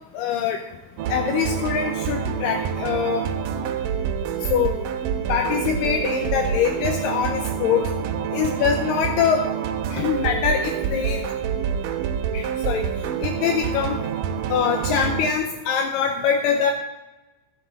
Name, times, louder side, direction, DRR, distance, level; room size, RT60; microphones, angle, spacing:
voice 1, 0.1-0.6 1.1-3.2 4.5-4.8 5.3-7.9 8.3-9.5 9.9-11.2 12.3-12.9 13.2-14.0 14.5-16.7, left 7 dB, 80° left, 4 dB, 2.2 m, -23 dB
sound 1, 1.0-15.3, right 7 dB, 75° right, 2.2 m, -27 dB
15.5 x 6.9 x 4.0 m, 1.1 s
omnidirectional pair, 4.3 m